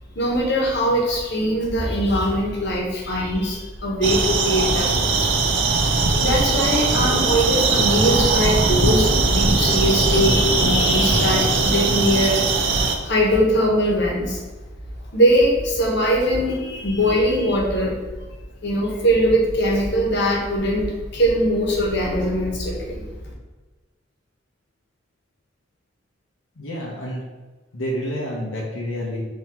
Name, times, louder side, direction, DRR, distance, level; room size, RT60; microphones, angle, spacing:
voice 1, 0.1-12.7 13.0-14.4 15.1-18.0 18.6-23.0, equal, 60° left, -2 dB, 1.0 m, -21 dB
sound 1, 4.0-13.0, right 3 dB, 65° right, 0.5 m, -20 dB
voice 2, 26.6-27.2 27.7-29.2, equal, 90° left, -3 dB, 0.8 m, -28 dB
3.8 x 2.9 x 4.3 m, 1.2 s
head